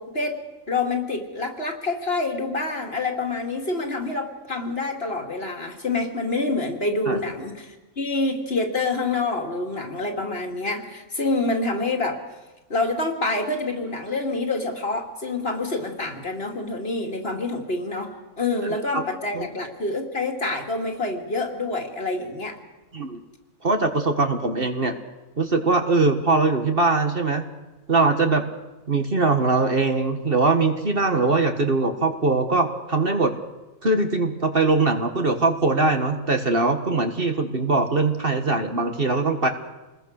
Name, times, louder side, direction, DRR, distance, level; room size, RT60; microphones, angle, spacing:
voice 1, 0.0-12.2 12.7-22.6, left 3 dB, 45° left, 4 dB, 2.8 m, -27 dB
voice 2, 18.6-19.0 19.3-19.5 22.9-23.2 23.6-24.9 25.4-27.5 27.9-28.4 28.9-33.3 33.8-39.5, right 3 dB, 40° right, 6 dB, 1.8 m, -21 dB
27.5 x 20.5 x 6.5 m, 1.1 s
omnidirectional pair, 1.5 m